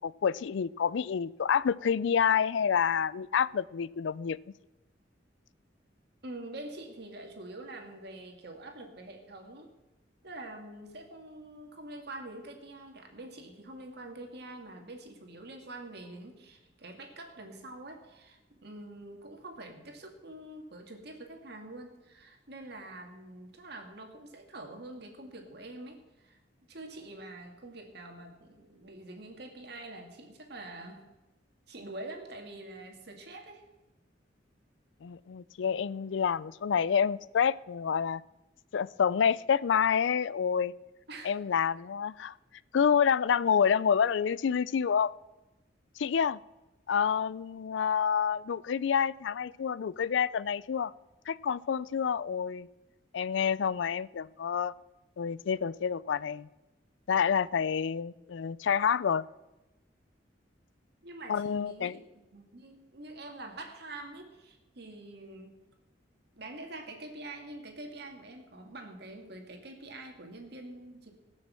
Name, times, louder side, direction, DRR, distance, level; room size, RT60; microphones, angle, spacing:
voice 1, 0.0-4.4 35.0-38.2 38.7-40.7 41.2-42.3 42.7-45.1 46.0-46.4 46.9-50.9 51.3-52.7 53.1-54.7 55.2-56.5 57.1-59.3 61.3-62.0, left 7 dB, 75° left, 20 dB, 0.4 m, -28 dB
voice 2, 6.2-9.7 10.2-26.4 26.7-31.1 31.7-33.6 41.1-41.3 61.0-62.0 62.3-65.6 66.3-71.1, right 2 dB, 60° right, 3 dB, 2.1 m, -45 dB
18.5 x 6.5 x 7.6 m, 1.0 s
head